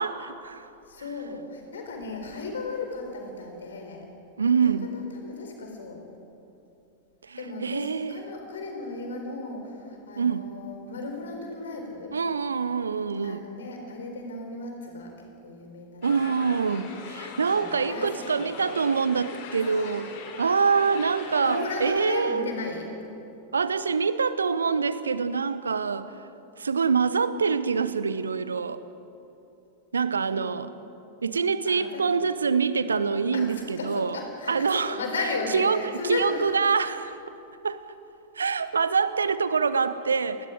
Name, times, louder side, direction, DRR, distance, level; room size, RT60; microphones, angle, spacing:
voice 1, 0.0-0.7 4.4-4.9 7.2-8.2 10.2-10.4 12.1-13.5 16.0-20.1 20.4-22.4 23.5-26.1 26.6-28.8 29.9-30.7 31.2-34.2 34.5-35.0 35.5-37.1 37.6-37.8 38.3-40.5, right 5 dB, 75° right, 14 dB, 0.9 m, -25 dB
voice 2, 0.8-4.1 4.6-6.0 7.4-12.2 13.2-16.3 16.5-16.7 17.4-18.5 21.4-22.9 30.3-30.5 31.6-32.0 33.3-36.5, left 3 dB, 65° left, 3 dB, 4.2 m, -35 dB
sound 1, 16.0-22.2, left 5 dB, 50° left, 3.4 m, -41 dB
29.0 x 20.5 x 5.2 m, 2.8 s
figure-of-eight pair, 90°, 0 cm